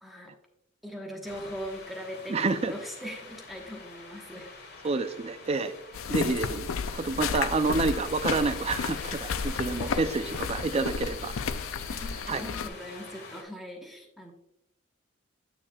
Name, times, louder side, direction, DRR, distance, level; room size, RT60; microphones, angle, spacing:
voice 1, 0.0-0.3 0.8-4.5 7.1-7.2 11.9-14.3, equal, ahead, 0 dB, 1.1 m, -40 dB
sound 1, 1.2-13.4, left 3 dB, 50° left, 1.7 m, -45 dB
voice 2, 2.3-2.7 4.8-5.7 6.1-11.4 12.3-12.4, right 3 dB, 30° right, 11 dB, 0.4 m, -28 dB
sound 2, 5.9-12.7, left 6 dB, 75° left, 0.5 m, -32 dB
9.7 x 6.9 x 2.3 m, 0.77 s
head